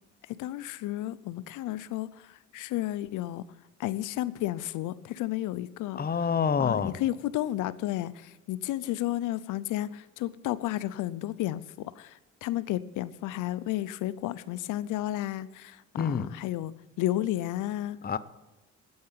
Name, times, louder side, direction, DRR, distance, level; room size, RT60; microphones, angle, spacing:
voice 1, 0.3-3.4 3.8-6.0 6.6-18.0, left 14 dB, 85° left, 0.6 m, -32 dB
voice 2, 6.0-6.9 16.0-16.3 18.0-18.2, left 6 dB, 30° left, 0.8 m, -27 dB
9.5 x 8.7 x 8.4 m
cardioid pair, 90°, 30 cm